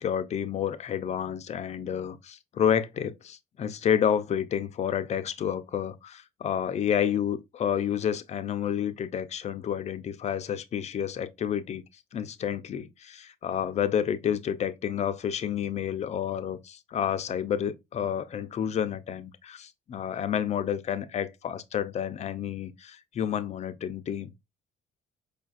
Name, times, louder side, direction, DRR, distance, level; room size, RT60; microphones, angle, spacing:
voice 1, 0.0-11.8 12.1-24.3, left 9 dB, 40° left, 0.5 m, -30 dB
5.0 x 2.4 x 2.4 m
cardioid pair, 110°, 17 cm